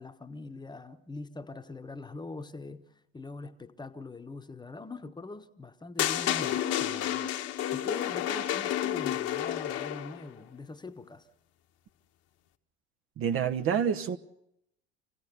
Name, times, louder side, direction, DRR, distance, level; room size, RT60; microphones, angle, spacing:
voice 1, 0.0-2.8 3.1-7.3 7.7-11.3, left 3 dB, 15° left, 1.2 m, -42 dB
sound 1, 6.0-10.2, left 11 dB, 50° left, 1.3 m, -30 dB
voice 2, 13.2-14.2, right 8 dB, 45° right, 1.1 m, -27 dB
26.5 x 16.5 x 6.9 m
figure-of-eight pair, 65°, 32 cm